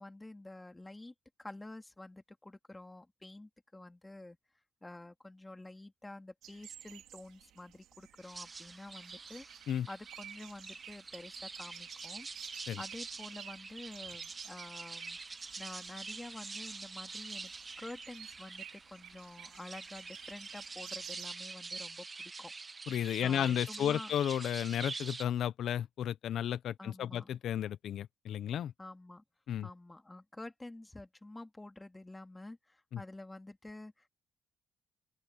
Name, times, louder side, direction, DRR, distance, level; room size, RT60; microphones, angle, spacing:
voice 1, 0.0-4.4 4.8-12.3 12.8-15.2 15.6-17.5 17.8-22.5 23.2-24.1 26.8-27.4 28.8-29.2 29.6-34.1, left 2 dB, 15° left, 3.0 m, -49 dB
sound 1, 6.4-21.3, right 12 dB, 85° right, 4.0 m, -53 dB
sound 2, 8.2-25.2, right 4 dB, 30° right, 1.5 m, -46 dB
voice 2, 22.9-28.7 29.5-29.7 32.9-33.0, left 10 dB, 70° left, 0.9 m, -33 dB
open air
cardioid pair, 90°, 0 cm